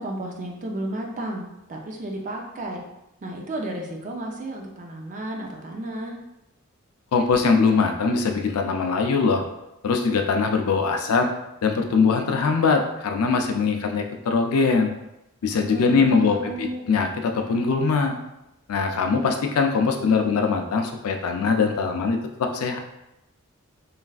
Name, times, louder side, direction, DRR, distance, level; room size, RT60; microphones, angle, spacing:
voice 1, 0.0-2.8 3.2-6.2 15.6-16.8, right 1 dB, 35° right, 1 dB, 0.4 m, -33 dB
voice 2, 7.1-9.4 9.8-11.3 11.6-14.9 15.4-18.2 18.7-22.8, left 4 dB, 85° left, 4 dB, 0.4 m, -22 dB
3.2 x 2.4 x 2.3 m, 0.88 s
head